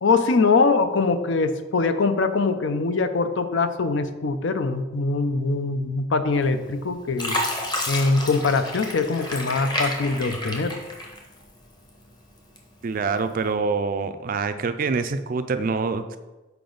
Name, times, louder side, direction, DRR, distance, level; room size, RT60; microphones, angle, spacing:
voice 1, 0.0-7.4 7.9-10.7, left 3 dB, 65° left, 9 dB, 0.5 m, -22 dB
Fill (with liquid), 6.4-6.8 7.2-11.6 12.0-12.8 13.4-13.5, left 1 dB, 20° left, 0.9 m, -30 dB
voice 2, 12.8-16.2, right 4 dB, 45° right, 10 dB, 0.4 m, -25 dB
6.8 x 4.8 x 3.9 m, 1.1 s
head